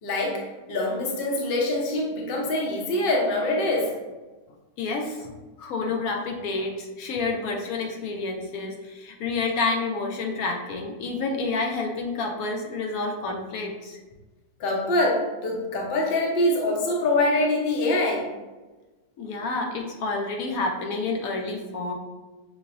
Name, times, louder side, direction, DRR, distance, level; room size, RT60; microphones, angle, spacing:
voice 1, 0.0-4.0 14.6-18.3, left 1 dB, 50° left, -2 dB, 0.8 m, -24 dB
voice 2, 4.8-5.3 5.6-14.0 19.2-21.9, left 3 dB, 75° left, 1 dB, 1.0 m, -29 dB
6.0 x 2.1 x 2.4 m, 1.2 s
omnidirectional pair, 1.5 m